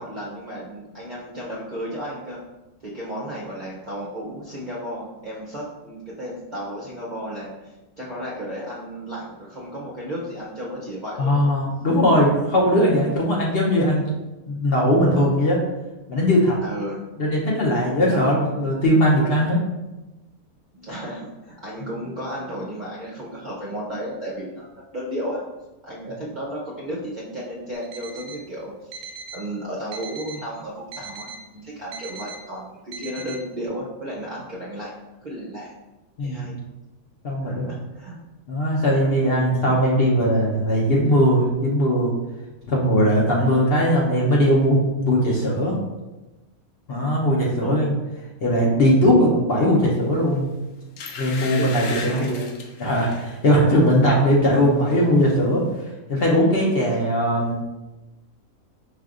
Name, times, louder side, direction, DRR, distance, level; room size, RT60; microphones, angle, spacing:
voice 1, 0.0-2.4 2.8-11.5 16.6-17.0 18.1-18.3 20.7-24.7 24.9-25.4 25.8-31.3 31.5-34.9 35.2-35.7 36.2-36.5 37.4-38.2 47.6-48.0 51.6-52.5, equal, 50° right, -6 dB, 0.5 m, -33 dB
voice 2, 11.2-14.0 14.5-15.6 16.1-16.6 17.2-19.6 36.2-36.5 37.2-37.6 38.5-42.1 42.7-45.8 46.9-48.0 48.4-50.6 51.2-52.3 52.8-55.6 56.1-57.7, equal, 55° left, -3 dB, 0.8 m, -19 dB
Alarm, 27.7-28.4 28.9-29.4 29.9-30.4 30.9-31.4 31.9-32.4 32.9-33.4, right 4 dB, 70° right, 0.9 m, -38 dB
sound 1, 50.3-50.4 51.0-53.3 53.8-54.0 54.3-55.0 55.3-55.4, left 4 dB, 85° left, 1.1 m, -36 dB
5.0 x 3.3 x 2.4 m, 1.1 s
omnidirectional pair, 1.5 m